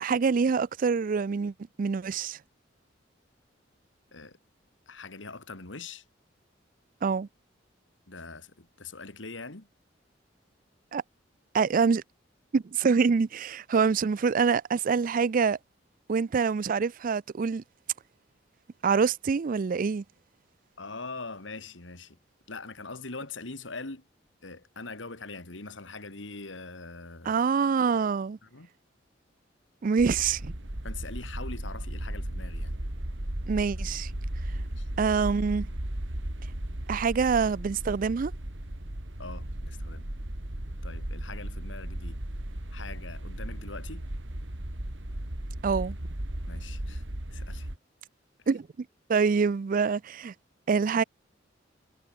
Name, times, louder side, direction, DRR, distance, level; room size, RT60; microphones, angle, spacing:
voice 1, 0.0-2.4 7.0-7.3 10.9-11.0 11.5-12.0 12.5-15.6 16.1-17.6 18.8-20.0 27.3-28.4 29.8-30.5 33.5-34.1 35.0-35.7 36.9-38.3 45.6-45.9 48.5-48.7 49.1-50.3 50.7-51.0, right 5 dB, 45° right, 0.4 m, -25 dB
voice 2, 4.9-6.0 8.1-9.7 20.8-22.2 22.5-24.1 24.4-27.4 28.4-28.7 30.8-32.8 34.5-34.9 39.2-40.1 40.8-42.2 42.7-44.1 46.5-47.0 47.3-47.7 48.4-48.5, left 3 dB, 85° left, 2.6 m, -42 dB
sound 1, 30.0-47.8, right 1 dB, 75° right, 2.8 m, -36 dB
head